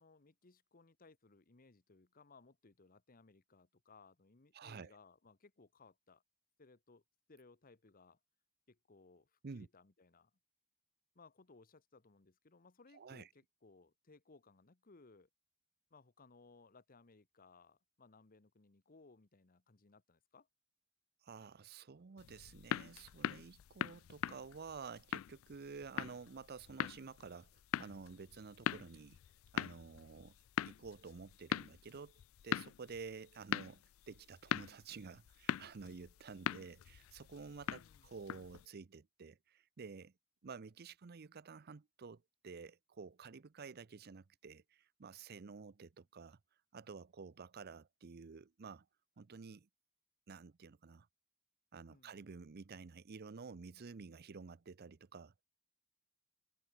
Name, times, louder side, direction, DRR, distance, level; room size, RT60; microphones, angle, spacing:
voice 1, 0.0-6.2 6.6-7.0 7.3-8.2 8.7-10.3 11.1-15.3 15.9-20.5 34.9-35.1 37.7-38.1 51.9-52.2, left 3 dB, 45° left, 1.1 m, -64 dB
voice 2, 4.5-5.0 9.4-9.7 12.9-13.3 21.2-29.2 29.5-30.4 30.7-40.1 40.4-46.4 46.7-48.9 49.2-49.7 50.3-51.1 51.7-55.4, right 5 dB, 50° right, 0.6 m, -51 dB
sound 1, 22.2-38.7, left 10 dB, 80° left, 0.3 m, -42 dB
head